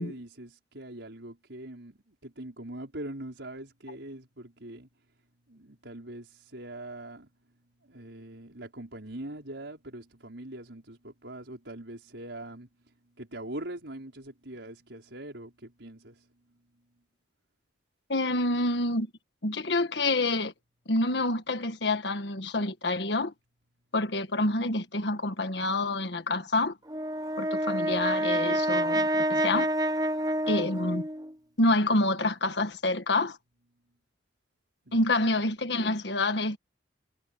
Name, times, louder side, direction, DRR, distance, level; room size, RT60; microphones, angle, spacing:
voice 1, 0.0-4.9 5.5-7.3 7.8-16.3 34.9-35.0, right 1 dB, 80° right, 5.2 m, -42 dB
voice 2, 18.1-19.1 19.4-20.5 20.9-23.3 23.9-26.8 27.4-29.7 30.5-31.0 31.6-33.4 34.9-36.6, left 2 dB, 70° left, 1.7 m, -27 dB
Brass instrument, 26.9-31.3, right 1 dB, 20° right, 1.2 m, -28 dB
head